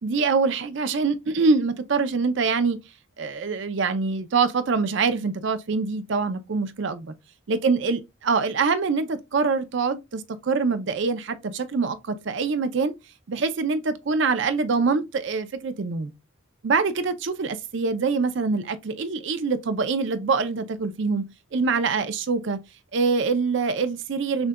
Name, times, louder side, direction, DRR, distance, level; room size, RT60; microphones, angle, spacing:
voice 1, 0.0-2.8 3.2-7.1 7.5-12.9 13.3-16.1 16.6-21.2 21.5-22.6 22.9-24.5, right 4 dB, 55° right, 0.5 m, -24 dB
6.3 x 2.3 x 2.2 m
head